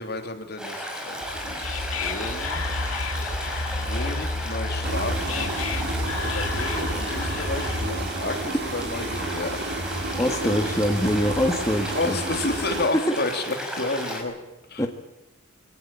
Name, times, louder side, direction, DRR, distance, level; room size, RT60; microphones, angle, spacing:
voice 1, 0.0-2.6 3.8-5.7 6.0-9.6 10.3-10.4 11.9-14.3 14.7-14.9, left 2 dB, 50° left, 5 dB, 3.1 m, -31 dB
Stream, 0.6-14.2, equal, 5° right, 5.2 m, -34 dB
Whispering, 1.2-8.1, left 3 dB, 80° left, 2.1 m, -30 dB
sound 1, 4.8-12.9, right 2 dB, 55° right, 2.3 m, -31 dB
voice 2, 10.2-12.2 13.1-13.2 14.8-14.9, equal, 15° left, 3 dB, 1.5 m, -24 dB
23.5 x 18.0 x 9.0 m, 0.94 s
head